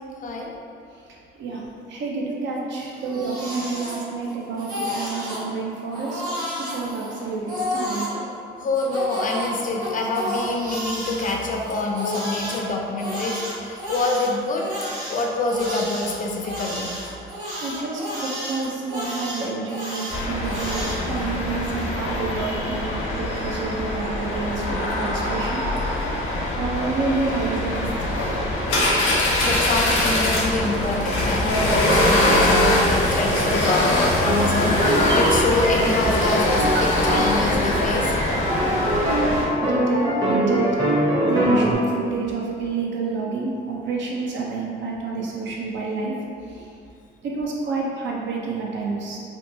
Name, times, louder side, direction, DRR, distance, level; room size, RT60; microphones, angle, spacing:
voice 1, 1.9-6.2 6.7-8.1 17.6-25.7 26.6-28.3 39.6-40.7 41.2-46.1 47.2-49.2, right 4 dB, 70° right, -3 dB, 0.5 m, -28 dB
Crying sobbing, 2.8-4.3 4.6-5.4 5.9-8.1 8.7-12.6 13.0-21.0, equal, 40° right, 1.5 m, -31 dB
voice 2, 8.6-14.6 15.1-16.9 26.3-26.5 29.2-38.1, left 2 dB, 40° left, 0 dB, 0.4 m, -26 dB
sound 1, 20.1-39.5, left 1 dB, 75° left, 0.7 m, -23 dB
sound 2, 34.2-41.7, equal, 20° right, 0.7 m, -23 dB
2.8 x 2.2 x 2.6 m, 2.4 s
cardioid pair, 90°, 20 cm